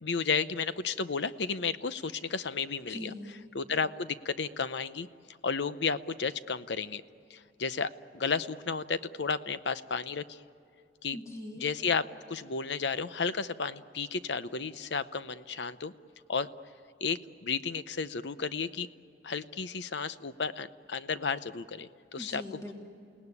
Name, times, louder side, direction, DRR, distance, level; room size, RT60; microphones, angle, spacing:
voice 1, 0.0-3.1 3.5-5.1 5.4-7.0 7.3-10.4 11.0-11.2 11.6-15.9 16.3-16.5 17.0-18.9 19.2-22.4, left 5 dB, 80° left, 14 dB, 0.7 m, -33 dB
voice 2, 2.9-3.4 11.1-11.6 22.2-22.7, left 1 dB, 15° left, 0 dB, 2.4 m, -41 dB
29.0 x 18.5 x 9.8 m, 2.6 s
head